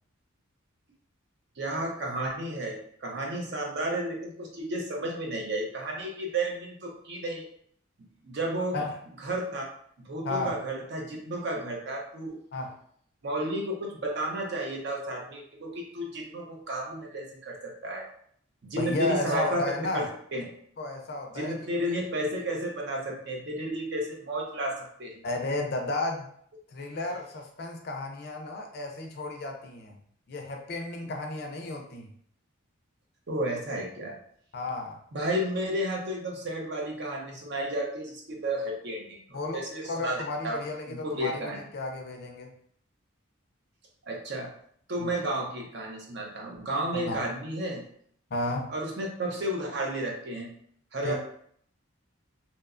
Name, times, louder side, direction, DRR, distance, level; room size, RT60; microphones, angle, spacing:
voice 1, 1.6-7.4 8.2-8.8 9.2-9.6 10.0-12.4 13.2-18.1 18.6-19.6 19.9-20.4 21.3-25.2 33.3-34.2 35.1-40.6 40.9-41.6 44.1-44.5 44.9-47.8 48.7-50.5 50.9-51.2, right 1 dB, 55° right, 0 dB, 0.5 m, -32 dB
voice 2, 10.2-10.6 12.5-12.8 18.8-20.1 20.8-21.6 25.2-26.3 26.7-30.0 30.3-32.1 34.5-35.0 39.3-39.6 39.8-42.5 45.0-45.1 46.9-47.3 48.3-48.7 51.0-51.2, left 2 dB, 50° left, 2 dB, 0.4 m, -33 dB
2.7 x 2.1 x 2.4 m, 0.64 s
head